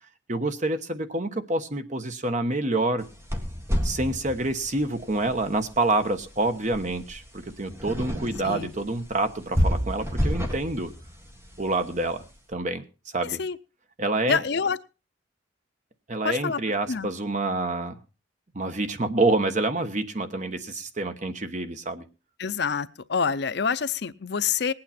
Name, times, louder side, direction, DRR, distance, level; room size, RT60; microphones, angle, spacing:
voice 1, 0.3-3.1 3.8-10.9 11.6-12.2 12.5-12.8 13.1-13.4 14.0-14.4 16.1-17.9 18.5-22.0, right 2 dB, 40° right, 8 dB, 1.1 m, -27 dB
sound 1, 3.0-12.4, equal, 15° right, 1.8 m, -31 dB
voice 2, 13.2-13.6 14.3-14.8 16.2-16.6 16.9-17.1 22.4-24.7, left 6 dB, 60° left, 14 dB, 0.6 m, -27 dB
19.5 x 8.9 x 4.3 m, 0.32 s
head